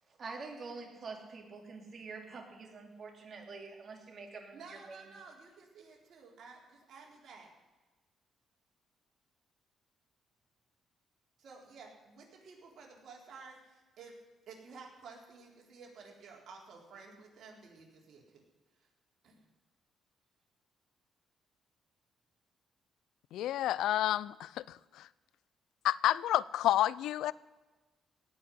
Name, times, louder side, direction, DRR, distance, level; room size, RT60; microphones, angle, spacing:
voice 1, 0.2-5.0, right 4 dB, 45° right, 2 dB, 3.2 m, -46 dB
voice 2, 4.5-7.5 11.4-14.2 14.5-18.4 18.7-18.9 19.2-19.5, right 4 dB, 65° right, -1 dB, 3.8 m, -53 dB
voice 3, 23.3-25.1 25.8-27.3, left 13 dB, 85° left, 21 dB, 0.4 m, -30 dB
17.5 x 5.8 x 9.8 m, 1.2 s
cardioid pair, 90°, 0 cm